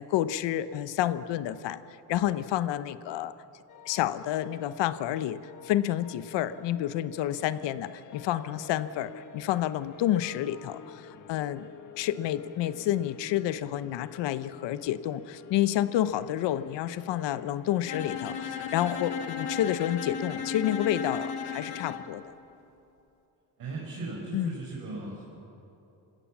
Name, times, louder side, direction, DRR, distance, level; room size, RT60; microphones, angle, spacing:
voice 1, 0.0-1.8 2.1-3.3 3.8-11.7 12.0-22.2 24.3-24.5, left 12 dB, 90° left, 13 dB, 0.9 m, -29 dB
sound 1, 3.7-21.8, left 8 dB, 45° left, 1.3 m, -50 dB
Bowed string instrument, 17.9-22.1, left 6 dB, 65° left, 1.7 m, -35 dB
voice 2, 23.6-25.2, right 3 dB, 55° right, -3 dB, 4.8 m, -37 dB
27.5 x 16.5 x 7.2 m, 2.9 s
cardioid pair, 160°, 42 cm